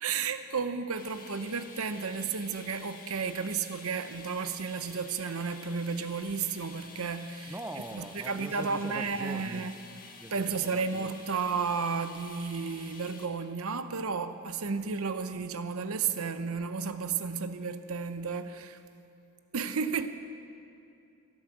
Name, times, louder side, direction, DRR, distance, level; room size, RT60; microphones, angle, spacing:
voice 1, 0.0-7.6 7.9-9.7 10.3-18.8 19.5-20.1, right 5 dB, 80° right, 10 dB, 0.8 m, -33 dB
sound 1, 0.9-13.3, left 4 dB, 40° left, 1.5 m, -50 dB
voice 2, 7.5-9.7 10.2-11.1, right 1 dB, 10° right, 7 dB, 0.5 m, -42 dB
15.5 x 11.5 x 7.3 m, 2.5 s
head